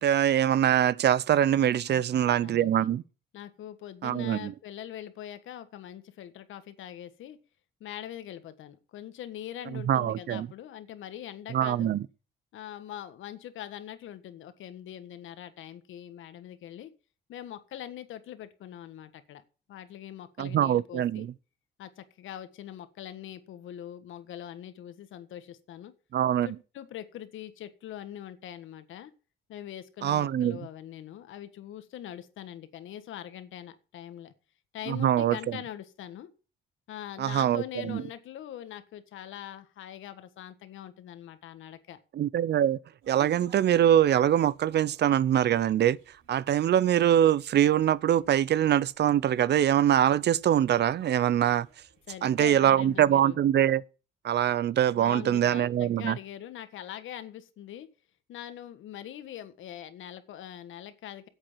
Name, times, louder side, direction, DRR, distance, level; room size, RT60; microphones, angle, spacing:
voice 1, 0.0-3.0 4.0-4.5 9.7-10.5 11.5-12.1 20.4-21.3 26.1-26.5 30.0-30.6 34.9-35.6 37.2-38.0 42.1-42.8 43.1-46.0 46.3-51.7 52.2-53.8 54.2-56.2, right 10 dB, 60° right, 0.6 m, -23 dB
voice 2, 1.9-2.9 3.3-7.4 7.8-11.9 12.5-16.9 17.3-19.4 19.7-21.3 21.8-25.9 26.4-29.1 29.5-34.3 34.7-36.3 36.9-42.0 52.1-53.4 54.9-57.9 58.3-61.3, left 11 dB, 80° left, 1.5 m, -42 dB
sound 1, 43.0-53.0, right 6 dB, 90° right, 5.8 m, -56 dB
8.5 x 8.1 x 7.3 m
cardioid pair, 90°, 20 cm